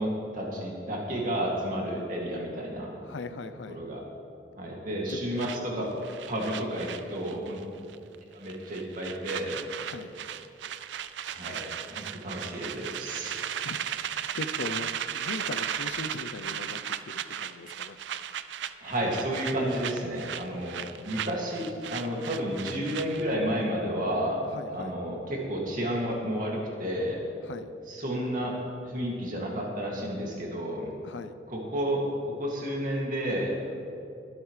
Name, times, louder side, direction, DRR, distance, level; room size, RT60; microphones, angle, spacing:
voice 1, 0.0-2.9 3.7-4.0 4.6-5.9 6.3-7.6 8.3-9.6 11.3-13.4 18.8-24.4 24.7-27.2 27.9-28.5 28.8-30.9 31.5-33.7, equal, 45° right, -2 dB, 2.3 m, -31 dB
voice 2, 3.0-3.8 5.1-5.2 9.8-10.1 13.6-13.8 14.3-16.8 17.1-18.0 24.4-24.9 27.4-27.7 31.0-31.3, left 3 dB, 80° left, 10 dB, 0.5 m, -39 dB
sound 1, 5.4-7.6 7.9-8.2 8.5-23.4, right 9 dB, 80° right, 0.4 m, -36 dB
23.0 x 8.2 x 3.3 m, 2.6 s
head